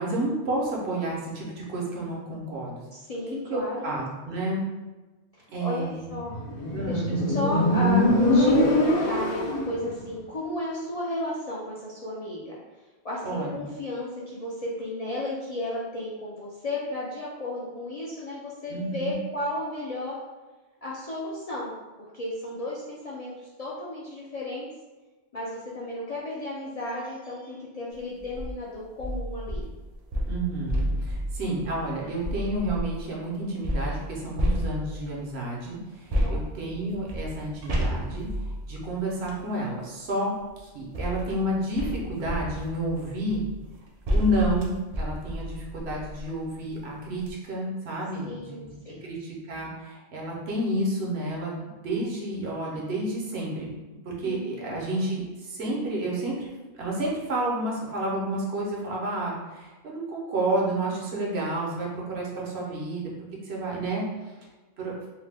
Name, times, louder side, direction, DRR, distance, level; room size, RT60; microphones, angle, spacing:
voice 1, 0.0-2.8 3.5-4.7 5.5-6.1 6.7-7.1 13.2-13.6 18.7-19.2 30.2-43.4 44.1-53.7 54.0-56.3 56.8-63.1 63.4-64.3 64.8-64.9, right 1 dB, 75° right, -3 dB, 1.0 m, -30 dB
voice 2, 2.9-3.9 5.3-6.4 6.9-12.6 13.0-20.2 20.8-24.7 25.3-29.6 36.1-36.5 48.2-49.0 54.2-54.8, left 1 dB, 55° left, -7 dB, 0.4 m, -34 dB
Motorcycle, 6.3-9.8, left 1 dB, 90° left, 1.0 m, -22 dB
sound 1, 28.2-28.5 29.0-33.0 33.6-35.2 36.1-39.5 40.4-46.3 46.8-46.9 47.2-47.3, equal, 55° right, 0.4 m, -31 dB
2.6 x 2.1 x 3.3 m, 1.2 s
omnidirectional pair, 1.1 m